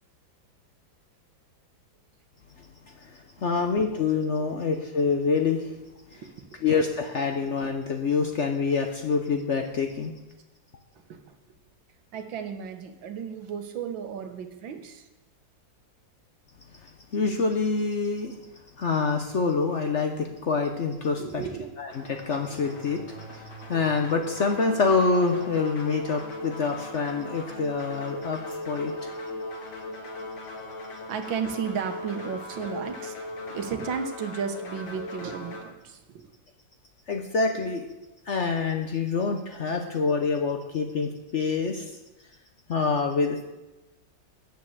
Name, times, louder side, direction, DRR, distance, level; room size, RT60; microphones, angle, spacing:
voice 1, 3.0-5.7 6.1-6.2 6.6-10.1 17.1-18.3 18.8-21.4 21.8-23.0 23.3-28.9 37.1-37.9 38.3-41.9 42.7-43.4, left 4 dB, 50° left, 4 dB, 0.9 m, -26 dB
voice 2, 6.1-6.6 11.1-11.4 12.1-15.1 21.1-21.6 31.1-36.3, right 7 dB, 85° right, 6 dB, 1.8 m, -34 dB
sound 1, 21.9-35.6, left 2 dB, 90° left, 2.6 m, -38 dB
8.7 x 7.7 x 7.3 m, 1.0 s
omnidirectional pair, 2.0 m